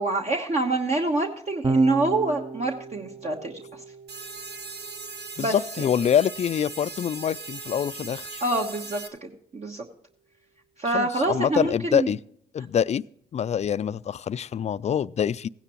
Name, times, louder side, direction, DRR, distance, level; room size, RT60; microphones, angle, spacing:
voice 1, 0.0-3.6 5.4-5.9 8.4-9.9 10.8-12.1, right 2 dB, 45° right, 1.2 m, -26 dB
Electric guitar / Bass guitar, 1.6-8.0, right 3 dB, 25° right, 0.6 m, -35 dB
sound 1, 4.1-9.1, right 4 dB, 85° right, 1.2 m, -39 dB
voice 2, 5.4-8.4 10.9-12.2 12.5-13.0 13.3-15.5, left 8 dB, 45° left, 0.4 m, -25 dB
16.0 x 9.8 x 3.0 m
supercardioid pair, 55°, 16 cm